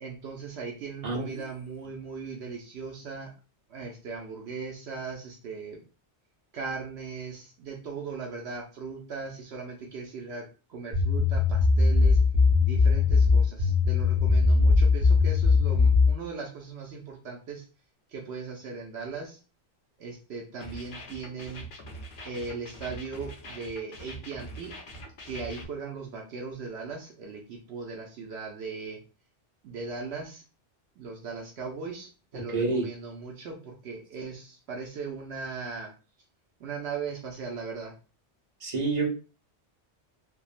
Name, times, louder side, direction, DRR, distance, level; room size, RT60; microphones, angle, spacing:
voice 1, 0.0-3.3 3.7-5.8 6.5-12.2 12.6-17.6 18.1-19.4 20.0-21.7 22.2-24.8 25.2-29.0 29.6-30.4 31.0-35.9 36.6-38.0, right 4 dB, 75° right, 0 dB, 0.8 m, -38 dB
sound 1, 10.9-16.1, left 4 dB, 60° right, 1.7 m, -20 dB
sound 2, 20.6-25.7, right 1 dB, 55° left, 0.8 m, -43 dB
voice 2, 32.5-32.9 38.6-39.1, right 3 dB, 40° right, -2 dB, 1.0 m, -27 dB
3.5 x 2.0 x 2.4 m, 0.34 s
omnidirectional pair, 1.1 m